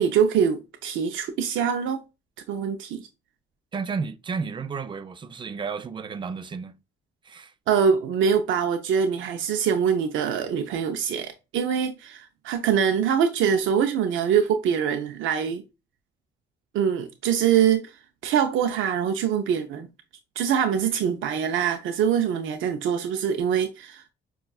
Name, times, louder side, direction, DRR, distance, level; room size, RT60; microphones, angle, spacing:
voice 1, 0.0-2.0 2.5-3.1 7.7-15.6 16.7-17.9 18.2-19.9 20.4-24.1, right 7 dB, 80° right, 0.5 m, -24 dB
voice 2, 3.7-6.8 7.3-7.5, right 5 dB, 25° right, 0.4 m, -32 dB
5.4 x 2.3 x 2.3 m
cardioid pair, 90°, 20 cm